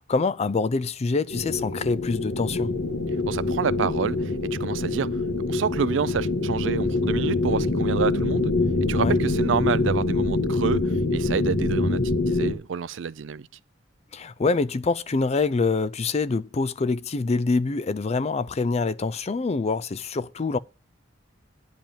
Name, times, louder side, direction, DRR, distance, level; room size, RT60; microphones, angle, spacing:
voice 1, 0.0-2.7 8.9-9.2 14.1-20.6, left 4 dB, 35° left, 0.4 m, -25 dB
sound 1, 1.3-12.5, left 2 dB, 80° left, 1.7 m, -25 dB
voice 2, 3.3-4.2 4.6-5.1 5.5-8.5 8.9-10.8 11.1-12.0 12.3-13.5, right 6 dB, 75° right, 0.4 m, -28 dB
10.5 x 5.1 x 7.3 m
head